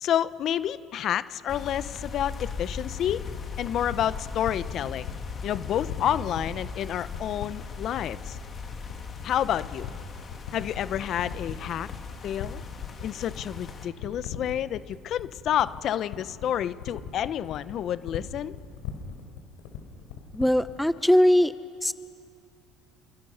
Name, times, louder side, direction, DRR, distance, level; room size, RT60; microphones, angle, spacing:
voice 1, 0.0-3.2 3.6-5.1 5.4-8.4 9.2-9.9 10.5-11.9 12.2-12.6 13.0-18.5, left 10 dB, 50° left, 15 dB, 0.8 m, -29 dB
sound 1, 1.5-13.9, left 5 dB, 35° left, 2.6 m, -38 dB
sound 2, 3.1-20.8, left 9 dB, 85° left, 4.0 m, -39 dB
voice 2, 20.3-21.5 21.8-21.9, left 1 dB, 5° left, 14 dB, 0.6 m, -20 dB
30.0 x 27.5 x 5.7 m, 2.4 s
supercardioid pair, 100°, 0 cm